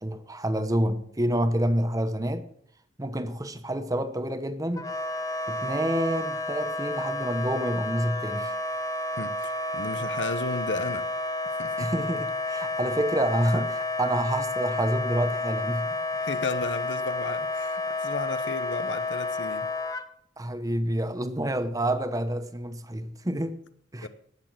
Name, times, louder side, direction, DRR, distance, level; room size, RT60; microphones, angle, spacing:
voice 1, 0.0-2.5 3.0-4.9 5.5-8.5 11.8-16.0 20.4-23.6 23.9-24.1, right 1 dB, 20° right, 0.9 m, -28 dB
Wind instrument woodwind instrument, 4.8-20.0, left 2 dB, 20° left, 0.9 m, -31 dB
voice 2, 9.2-11.1 11.6-11.9 16.1-19.7 24.0-24.1, left 3 dB, 70° left, 1.0 m, -34 dB
18.0 x 6.7 x 7.5 m
head